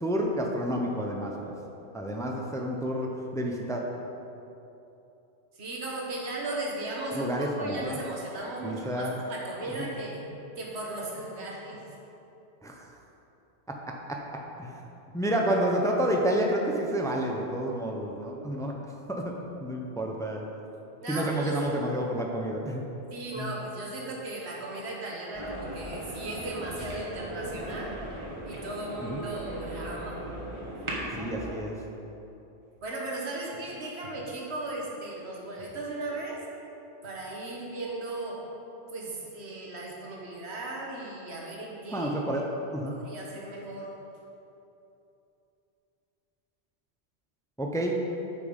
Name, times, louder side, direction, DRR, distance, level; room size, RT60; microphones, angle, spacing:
voice 1, 0.0-1.3 1.9-3.8 7.1-8.0 8.6-9.2 9.8-9.9 12.6-12.9 13.7-13.8 14.1-14.2 14.6-14.8 15.1-18.8 19.1-19.3 19.6-20.4 21.1-22.9 23.4-23.5 29.1-29.2 31.1-31.8 41.9-42.9 47.6-48.0, right 1 dB, 5° left, 0 dB, 0.6 m, -29 dB
voice 2, 5.5-10.3 10.6-11.8 21.0-21.7 23.1-27.9 28.4-30.2 32.8-36.4 37.0-38.4 38.9-42.1 42.9-43.9, right 2 dB, 80° right, -3 dB, 1.5 m, -36 dB
sound 1, 25.3-31.6, right 1 dB, 30° right, 1.2 m, -38 dB
8.3 x 5.4 x 5.3 m, 2.9 s
omnidirectional pair, 1.1 m